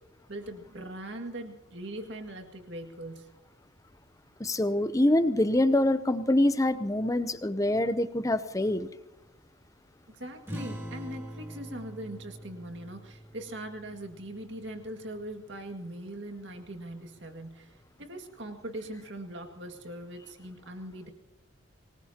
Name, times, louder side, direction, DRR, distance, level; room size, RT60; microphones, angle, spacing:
voice 1, 0.3-3.3 10.1-21.1, right 1 dB, 60° right, 4 dB, 2.1 m, -41 dB
voice 2, 4.4-8.9, left 1 dB, 15° left, 12 dB, 0.6 m, -25 dB
yamaha Am, 10.5-15.5, equal, 10° right, 2.5 m, -44 dB
24.5 x 19.5 x 2.9 m, 0.86 s
head